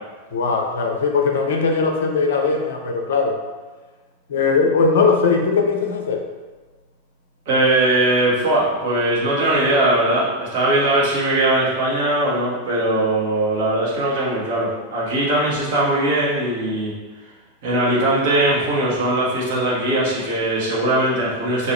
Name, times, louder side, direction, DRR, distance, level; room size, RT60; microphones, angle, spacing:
voice 1, 0.3-3.4 4.3-6.3, left 4 dB, 60° left, 2 dB, 0.5 m, -19 dB
voice 2, 7.5-16.9 17.6-21.7, right 1 dB, 50° right, -7 dB, 1.4 m, -20 dB
2.9 x 2.8 x 4.2 m, 1.3 s
figure-of-eight pair, 90°, 0 cm